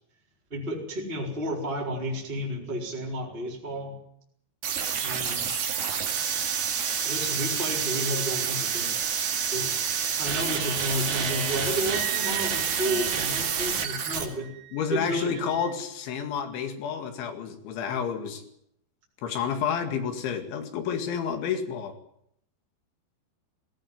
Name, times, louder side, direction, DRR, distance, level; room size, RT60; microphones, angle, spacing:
voice 1, 0.5-4.0 5.0-5.5 7.0-9.0 9.5-9.7 10.2-14.5 14.9-15.3, equal, 15° right, -2 dB, 3.9 m, -32 dB
sound 1, 4.6-14.2, right 7 dB, 65° right, 4.2 m, -28 dB
Wind instrument woodwind instrument, 11.9-15.8, right 15 dB, 90° right, 3.4 m, -40 dB
voice 2, 14.7-18.4 19.2-22.0, left 7 dB, 85° left, 6 dB, 4.6 m, -30 dB
19.0 x 18.0 x 9.6 m, 0.72 s
omnidirectional pair, 5.2 m